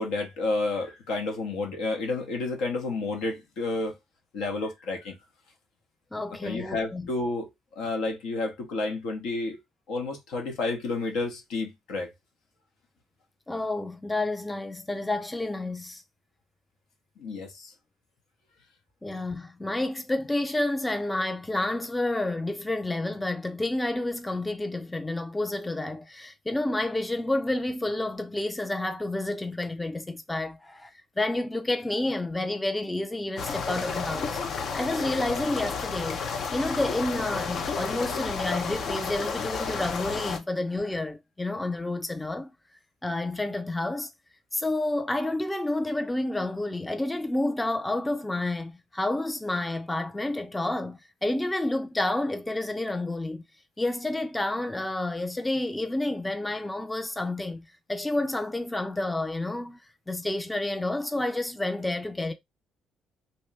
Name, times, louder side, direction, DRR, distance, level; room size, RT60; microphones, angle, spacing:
voice 1, 0.0-4.0 4.3-5.1 6.4-9.6 9.9-12.1 17.2-17.7, left 3 dB, 80° left, 0.9 m, -30 dB
voice 2, 6.1-7.1 13.5-16.0 19.0-34.4 34.7-36.2 36.5-42.5 43.0-44.1 44.5-53.4 53.8-59.8 60.1-62.3, left 2 dB, 15° left, 0.4 m, -30 dB
sound 1, 33.4-40.4, left 5 dB, 60° left, 0.6 m, -31 dB
2.7 x 2.2 x 3.2 m
supercardioid pair, 65°, 0 cm